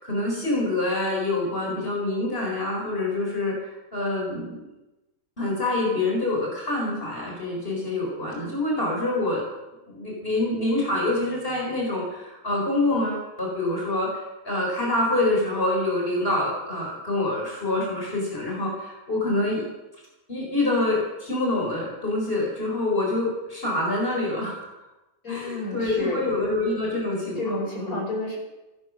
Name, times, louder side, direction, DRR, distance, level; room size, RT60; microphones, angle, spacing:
voice 1, 0.0-3.6 3.9-4.6 5.4-9.4 9.9-19.6 20.3-24.7 25.3-27.4 27.8-28.0, left 2 dB, 35° left, -2 dB, 4.6 m, -26 dB
voice 2, 25.2-26.2 27.4-28.4, left 2 dB, 60° left, -2 dB, 5.7 m, -30 dB
16.0 x 12.0 x 6.3 m, 1.0 s
omnidirectional pair, 1.6 m